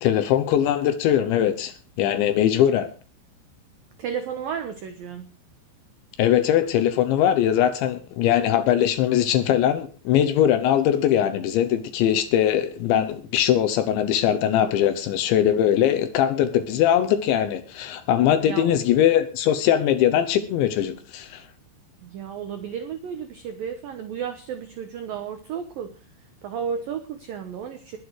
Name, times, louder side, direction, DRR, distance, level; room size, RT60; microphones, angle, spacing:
voice 1, 0.0-2.9 6.2-21.4, left 10 dB, 75° left, 3.0 m, -21 dB
voice 2, 4.0-5.2 18.4-18.8 22.0-25.9 26.4-28.0, right 7 dB, 80° right, 2.0 m, -33 dB
21.0 x 8.6 x 4.7 m
omnidirectional pair, 6.0 m